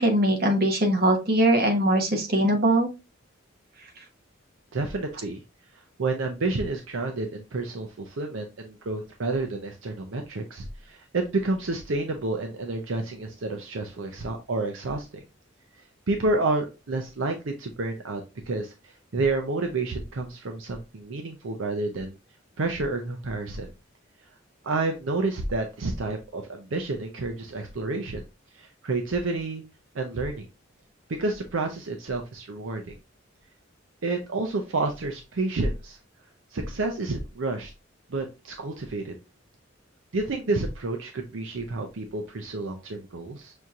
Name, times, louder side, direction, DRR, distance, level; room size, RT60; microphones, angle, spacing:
voice 1, 0.0-2.9, right 1 dB, 50° right, 3 dB, 1.0 m, -21 dB
voice 2, 4.7-5.4 6.0-15.2 16.1-22.2 22.6-23.7 24.6-28.2 28.5-29.6 29.9-30.5 31.2-32.9 34.0-36.0 36.5-37.7 38.1-39.1 40.1-43.5, right 2 dB, 75° right, 4 dB, 0.6 m, -29 dB
6.1 x 2.8 x 2.4 m, 0.27 s
head